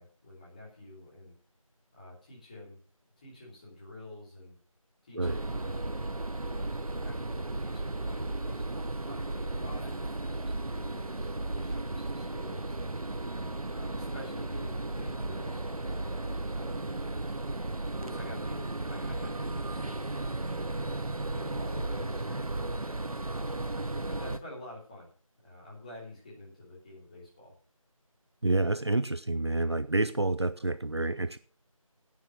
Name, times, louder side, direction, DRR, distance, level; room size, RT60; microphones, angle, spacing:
voice 1, 0.0-1.3 1.9-2.8 3.2-4.5 5.0-5.8 6.2-12.9 13.6-15.6 16.0-17.5 17.9-20.8 21.2-23.6 24.1-25.1 25.4-27.5, left 1 dB, 15° left, -6 dB, 3.3 m, -48 dB
sound 1, 5.2-24.4, right 2 dB, 80° right, 1.0 m, -35 dB
voice 2, 28.4-31.4, right 2 dB, 50° right, 13 dB, 0.6 m, -28 dB
10.5 x 9.4 x 6.1 m, 0.43 s
figure-of-eight pair, 170°, 18 cm